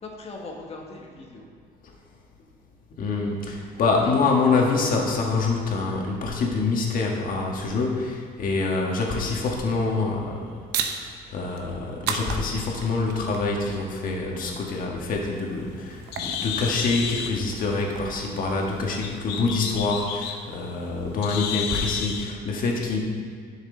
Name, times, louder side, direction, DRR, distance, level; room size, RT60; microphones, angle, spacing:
voice 1, 0.0-1.5 3.6-3.8, left 3 dB, 35° left, 0 dB, 1.6 m, -40 dB
voice 2, 3.0-10.5 10.9-11.0 11.3-23.0, left 3 dB, 55° left, 0 dB, 1.6 m, -26 dB
sound 1, 10.7-19.1, right 7 dB, 80° right, 0.8 m, -37 dB
Bird, 15.1-22.3, left 7 dB, 90° left, 0.7 m, -33 dB
10.5 x 6.5 x 3.9 m, 2.1 s
cardioid pair, 110°, 17 cm